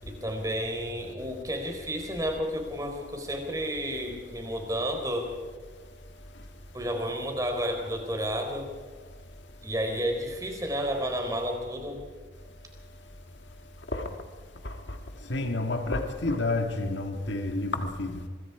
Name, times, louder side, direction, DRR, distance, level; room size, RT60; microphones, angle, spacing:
voice 1, 0.0-5.3 6.7-8.7 9.6-12.0, equal, 20° right, 4.1 m, -31 dB
voice 2, 15.3-18.3, left 2 dB, 85° left, 1.8 m, -29 dB
25.5 x 22.0 x 4.9 m
head